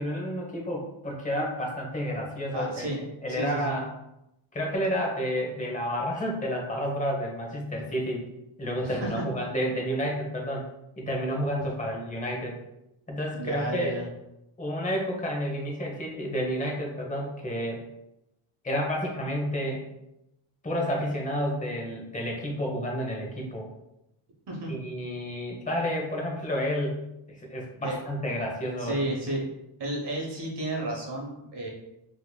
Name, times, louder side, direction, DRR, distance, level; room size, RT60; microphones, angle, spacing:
voice 1, 0.0-2.9 3.2-3.9 4.5-8.3 8.6-10.7 11.0-12.6 13.1-14.0 14.6-17.8 18.6-19.8 20.6-23.7 24.7-27.0 27.3-29.0, equal, 15° left, -1 dB, 0.9 m, -30 dB
voice 2, 2.5-3.0 3.3-3.8 8.8-9.2 13.3-14.1 24.5-24.7 27.8-28.0 28.8-29.4 29.8-31.7, right 1 dB, 55° right, -2 dB, 1.0 m, -32 dB
3.8 x 3.0 x 2.3 m, 0.89 s
cardioid pair, 90°, 49 cm